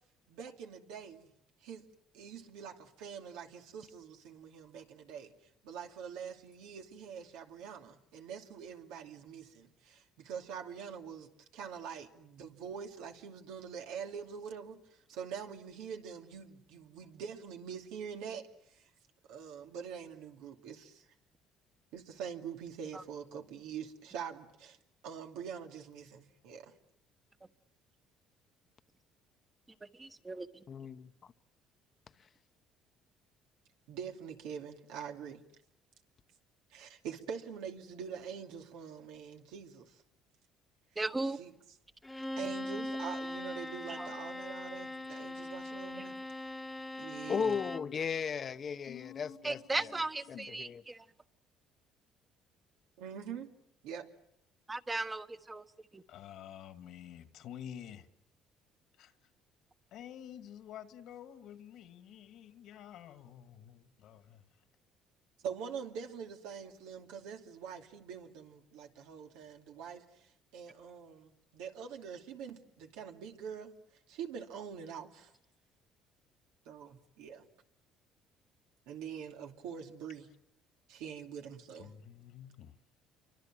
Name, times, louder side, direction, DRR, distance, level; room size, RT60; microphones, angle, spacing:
voice 1, 0.3-1.3 1.6-1.8 2.1-5.3 5.6-18.9 19.3-21.0 21.9-24.8 25.0-26.7 33.9-35.4 36.7-40.0 41.4-41.5 42.4-46.1 47.0-47.6 53.0-53.5 53.8-54.1 65.4-73.7 74.1-75.3 76.7-77.5 78.9-80.3 80.9-81.9, right 7 dB, 90° right, 2.5 m, -44 dB
voice 2, 29.9-30.6 41.0-41.4 43.9-44.1 46.0-46.1 49.4-51.1 54.7-55.6 55.9-56.0, right 2 dB, 15° right, 1.3 m, -37 dB
voice 3, 30.7-31.1 47.3-49.6 50.3-50.8, left 6 dB, 40° left, 1.0 m, -36 dB
Bowed string instrument, 42.0-48.0, left 1 dB, 10° left, 1.3 m, -41 dB
voice 4, 48.9-50.0 50.3-50.5 56.1-58.1 59.0-59.1 59.9-64.4 81.8-82.8, left 10 dB, 70° left, 2.1 m, -49 dB
28.5 x 24.5 x 7.6 m
cardioid pair, 100°, 0 cm